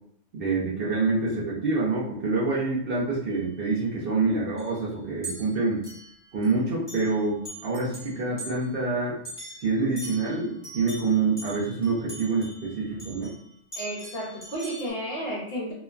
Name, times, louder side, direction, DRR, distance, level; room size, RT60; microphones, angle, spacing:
voice 1, 0.3-5.8 6.3-9.2 9.6-13.3, right 3 dB, 55° right, -4 dB, 0.7 m, -26 dB
sound 1, 3.3-3.4 4.6-4.7 5.2-6.5 6.9-7.2 7.5-8.6 9.2-13.4 13.7-14.9, right 1 dB, 20° left, 1.1 m, -42 dB
voice 2, 13.7-15.7, right 1 dB, 55° left, -4 dB, 1.0 m, -32 dB
2.9 x 2.1 x 2.4 m, 0.70 s
omnidirectional pair, 1.2 m